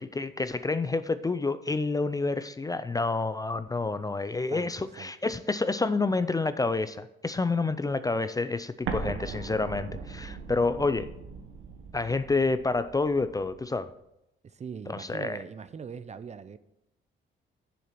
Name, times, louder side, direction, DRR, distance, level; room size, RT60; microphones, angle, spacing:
voice 1, 0.0-11.1 11.9-13.9 14.9-15.4, left 3 dB, 20° left, 13 dB, 0.4 m, -28 dB
voice 2, 4.5-5.1 14.4-16.6, right 6 dB, 35° right, 14 dB, 0.5 m, -41 dB
Explosion, 8.8-13.6, right 5 dB, 80° right, 1.3 m, -39 dB
7.3 x 7.0 x 5.8 m, 0.85 s
cardioid pair, 90°, 20 cm